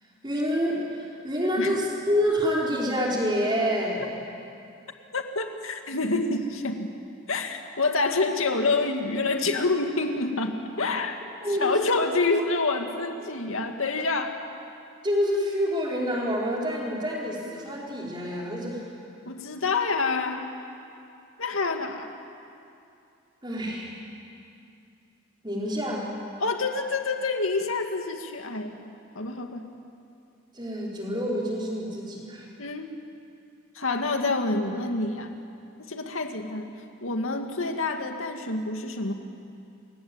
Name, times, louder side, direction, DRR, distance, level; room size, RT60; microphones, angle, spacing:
voice 1, 0.2-4.1 11.4-11.9 15.0-18.9 23.4-24.0 25.4-26.1 30.5-32.5, equal, 20° right, -3 dB, 5.1 m, -27 dB
voice 2, 5.1-6.9 7.3-11.2 11.6-14.4 19.3-20.5 21.4-22.1 26.4-28.9 29.1-29.7 32.6-32.9 33.7-35.3 35.8-36.7 37.0-39.1, left 3 dB, 75° left, 4 dB, 2.2 m, -27 dB
29.0 x 23.0 x 8.9 m, 2.6 s
head